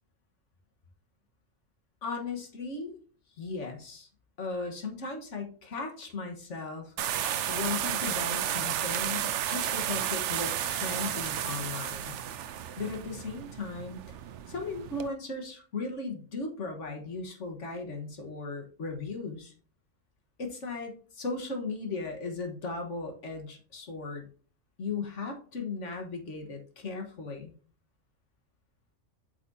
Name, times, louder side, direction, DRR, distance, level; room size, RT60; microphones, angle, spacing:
voice 1, 2.0-3.0 3.4-4.1 4.4-6.9 7.5-12.1 12.8-14.1 14.5-19.5 20.4-24.3 24.8-27.5, left 3 dB, 75° left, 3 dB, 1.7 m, -37 dB
sound 1, 7.0-15.1, right 10 dB, 75° right, 0.9 m, -32 dB
8.4 x 5.8 x 2.8 m, 0.41 s
omnidirectional pair, 1.3 m